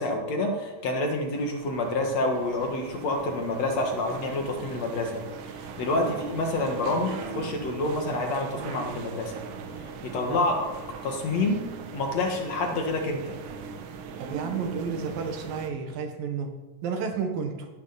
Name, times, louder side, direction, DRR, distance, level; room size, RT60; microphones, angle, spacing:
voice 1, 0.0-5.2 5.8-9.3 10.0-10.7 11.0-11.6 11.9-13.4, left 2 dB, 55° left, 3 dB, 2.0 m, -28 dB
sound 1, 0.9-15.7, right 6 dB, 80° right, 3.4 m, -40 dB
voice 2, 14.2-16.5 16.8-17.7, right 6 dB, 65° right, 5 dB, 2.9 m, -31 dB
15.0 x 13.5 x 4.1 m, 1.1 s
omnidirectional pair, 4.9 m